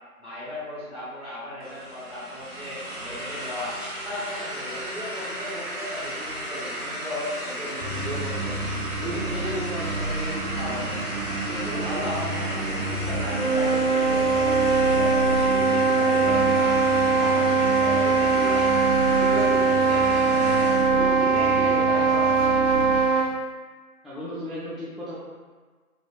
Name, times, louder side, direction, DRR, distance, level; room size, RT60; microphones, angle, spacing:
voice 1, 0.2-3.7 4.0-8.6 9.0-11.1 11.5-16.8 17.1-18.8 19.2-22.6, left 1 dB, 45° right, -12 dB, 1.4 m, -35 dB
sound 1, 1.6-20.9, equal, 85° right, 0.9 m, -34 dB
sound 2, 7.8-23.0, right 2 dB, 60° right, 0.6 m, -31 dB
sound 3, 13.1-23.4, right 4 dB, 60° left, 0.6 m, -21 dB
voice 2, 24.0-25.1, left 1 dB, ahead, -11 dB, 0.4 m, -35 dB
3.3 x 2.0 x 2.4 m, 1.4 s
figure-of-eight pair, 180°, 44 cm